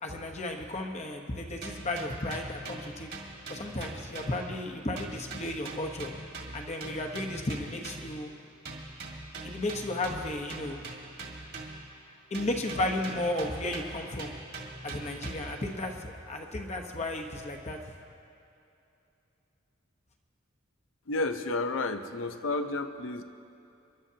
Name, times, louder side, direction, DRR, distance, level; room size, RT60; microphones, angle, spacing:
voice 1, 0.0-3.1 3.5-6.1 6.5-8.3 9.4-10.8 12.3-14.3 14.8-17.8, left 1 dB, 35° left, 2 dB, 1.0 m, -34 dB
sound 1, 1.6-4.7 5.0-8.2 8.6-12.0 12.3-15.7, right 2 dB, 50° right, 2.0 m, -42 dB
voice 2, 21.1-23.2, left 2 dB, 70° left, 8 dB, 0.7 m, -31 dB
28.5 x 11.5 x 2.8 m, 2.7 s
head